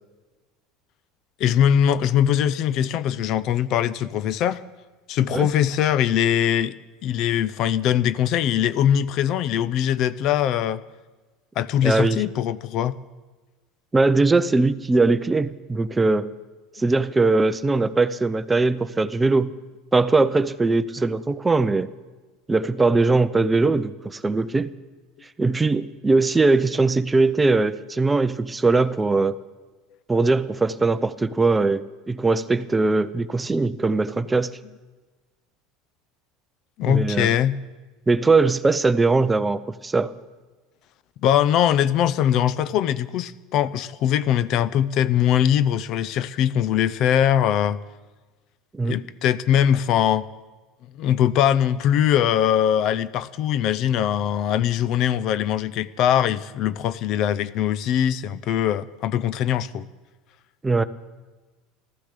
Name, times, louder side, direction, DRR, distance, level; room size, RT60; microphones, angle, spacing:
voice 1, 1.4-4.6 5.1-6.7 7.0-10.8 11.6-13.0 36.8-37.6 41.2-47.8 48.9-50.2 51.0-59.9, left 10 dB, 55° left, 16 dB, 0.6 m, -21 dB
voice 2, 11.8-12.2 13.9-16.3 16.8-19.5 19.9-21.9 22.5-24.7 25.4-29.4 30.1-34.5 36.8-37.3 38.1-40.1 48.7-49.0 60.6-60.8, right 3 dB, 15° right, 13 dB, 0.5 m, -20 dB
15.0 x 13.5 x 6.6 m, 1.3 s
supercardioid pair, 115°, 0 cm